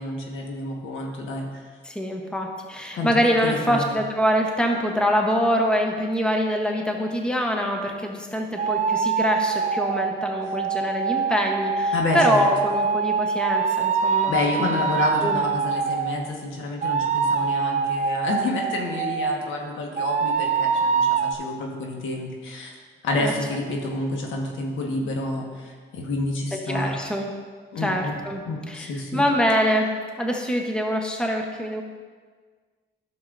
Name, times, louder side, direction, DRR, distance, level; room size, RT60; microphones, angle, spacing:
voice 1, 0.0-1.7 2.9-3.1 3.4-3.9 11.9-12.4 14.3-22.7 23.0-26.9 27.7-28.1 28.5-29.2, left 2 dB, 75° left, 0 dB, 1.4 m, -29 dB
voice 2, 1.9-14.7 15.2-15.4 23.2-23.3 26.7-27.3 27.8-28.4 28.7-31.8, equal, 5° left, 2 dB, 0.9 m, -24 dB
sound 1, 8.6-16.2 16.8-19.5 20.0-21.3, right 6 dB, 40° right, 0.4 m, -24 dB
11.0 x 6.6 x 2.6 m, 1.6 s
cardioid pair, 90°, 20 cm